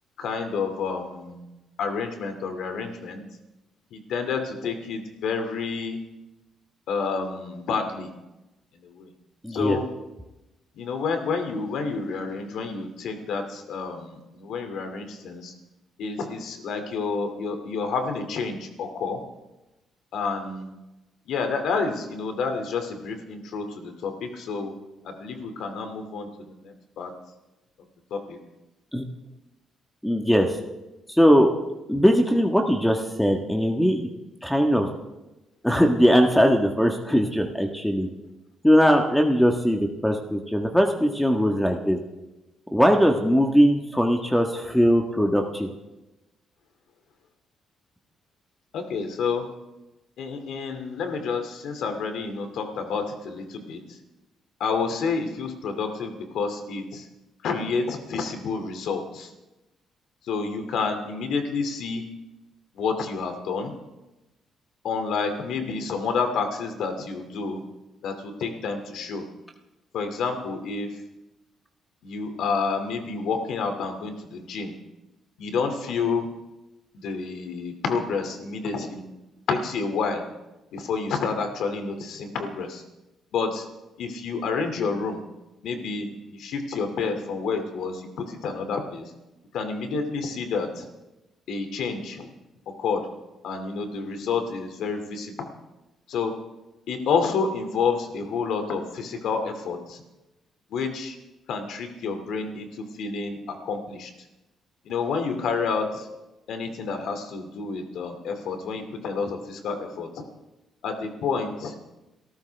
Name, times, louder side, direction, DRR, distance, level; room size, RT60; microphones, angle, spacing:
voice 1, 0.2-3.2 3.9-6.0 6.9-8.1 8.7-9.1 9.5-9.9 10.7-15.5 16.0-19.2 20.1-20.7 21.3-24.7 25.0-27.1 28.1-28.4 48.7-49.5 50.2-54.0 54.6-57.1 57.4-59.3 60.3-62.0 62.7-63.7 64.8-67.6 68.0-69.2 69.9-71.0 72.0-74.7 75.4-76.3 76.9-79.0 79.5-80.2 80.7-82.8 83.3-83.7 84.0-85.2 85.6-89.1 89.5-90.9 91.5-92.3 92.8-93.1 93.4-95.5 96.1-96.3 96.9-100.0 100.7-101.2 101.5-104.1 104.8-106.1 106.5-110.1 110.8-111.7, left 5 dB, 75° left, 6 dB, 2.5 m, -29 dB
voice 2, 9.4-9.8 28.9-29.0 30.0-30.6 31.1-31.5 31.9-34.1 34.4-34.9 35.6-38.1 38.6-42.0 42.7-45.7, equal, 5° left, 3 dB, 1.5 m, -20 dB
28.5 x 13.5 x 3.5 m, 1.0 s
cardioid pair, 90°, 0 cm